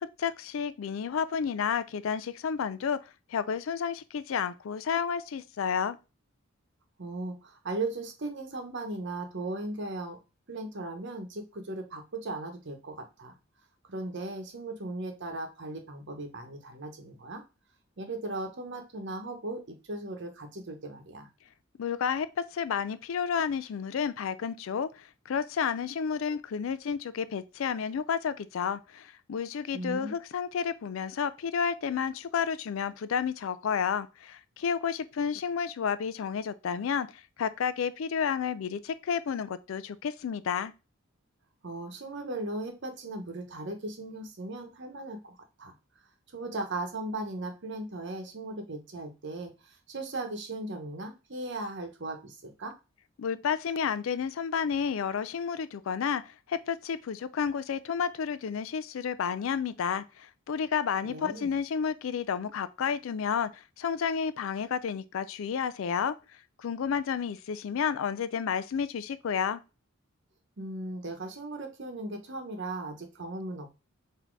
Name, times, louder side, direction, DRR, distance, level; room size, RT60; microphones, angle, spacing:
voice 1, 0.0-3.0 3.3-6.0 21.8-40.7 53.2-66.2 66.6-69.6, left 7 dB, 70° left, 0.4 m, -31 dB
voice 2, 7.0-10.2 10.5-13.3 13.9-17.4 18.0-21.3 29.7-30.1 41.6-45.7 46.3-52.7 61.0-61.6 70.6-73.7, right 2 dB, 55° right, 1.0 m, -37 dB
4.1 x 2.8 x 4.5 m
head